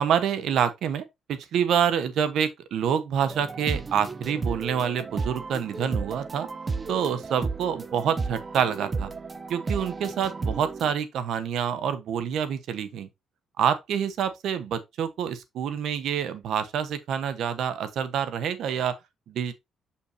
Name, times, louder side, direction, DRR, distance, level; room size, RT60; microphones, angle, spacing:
voice 1, 0.0-6.5 6.9-9.1 9.5-13.1 13.6-19.0 19.3-19.5, right 8 dB, 75° right, 1.0 m, -27 dB
sound 1, 3.2-10.9, right 4 dB, 30° right, 0.6 m, -33 dB
6.4 x 5.7 x 2.7 m
cardioid pair, 90°, 0 cm